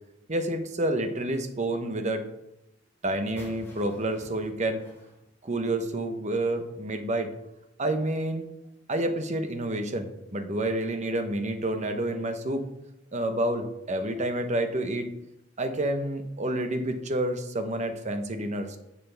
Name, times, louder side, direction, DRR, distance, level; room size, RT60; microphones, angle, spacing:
voice 1, 0.3-2.3 3.0-4.8 5.4-7.3 7.8-8.5 8.9-12.6 13.1-15.1 15.6-18.8, right 1 dB, 35° right, 7 dB, 0.9 m, -29 dB
sound 1, 3.4-6.1, left 1 dB, 15° left, 3.5 m, -50 dB
10.5 x 6.7 x 3.4 m, 0.86 s
head